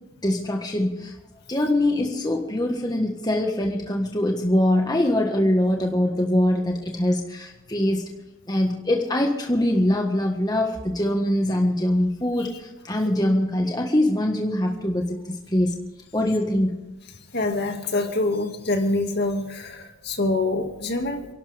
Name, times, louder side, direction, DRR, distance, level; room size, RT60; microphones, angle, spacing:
voice 1, 0.2-1.1 1.5-8.1 8.5-15.8 16.1-16.8, left 1 dB, 20° left, 2 dB, 1.5 m, -23 dB
voice 2, 17.3-21.3, left 2 dB, 50° left, 4 dB, 2.2 m, -25 dB
29.5 x 12.0 x 3.6 m, 1.1 s
head